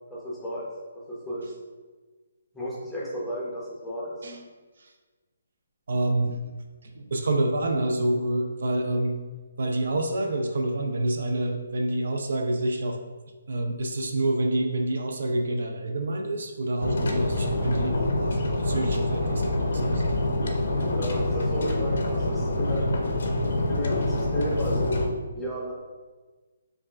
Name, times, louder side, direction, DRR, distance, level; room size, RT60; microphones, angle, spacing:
voice 1, 0.1-0.7 1.1-1.5 2.5-4.1 20.9-23.1 23.7-25.1 25.3-25.7, equal, 5° left, -7 dB, 0.6 m, -33 dB
voice 2, 5.9-6.4 6.9-9.1 9.6-13.0 13.5-20.0 20.5-20.6, right 1 dB, 65° right, 3 dB, 0.4 m, -27 dB
sound 1, 16.8-25.1, left 1 dB, 65° left, 0.5 m, -26 dB
5.1 x 2.4 x 2.3 m, 1.3 s
hypercardioid pair, 170°, 0 cm